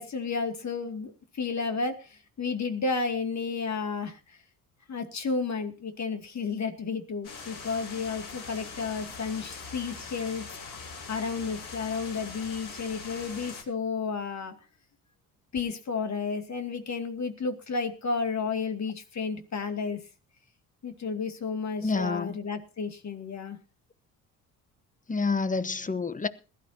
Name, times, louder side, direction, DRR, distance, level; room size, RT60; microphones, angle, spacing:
voice 1, 0.0-4.4 4.9-10.4 11.1-14.5 15.5-20.0 20.8-23.6, left 4 dB, 40° left, 2.4 m, -32 dB
sound 1, 7.2-13.6, left 4 dB, 60° left, 6.4 m, -42 dB
voice 2, 21.8-22.4 25.1-26.3, left 4 dB, 20° left, 1.1 m, -28 dB
21.0 x 12.5 x 2.8 m
hypercardioid pair, 55°, 43 cm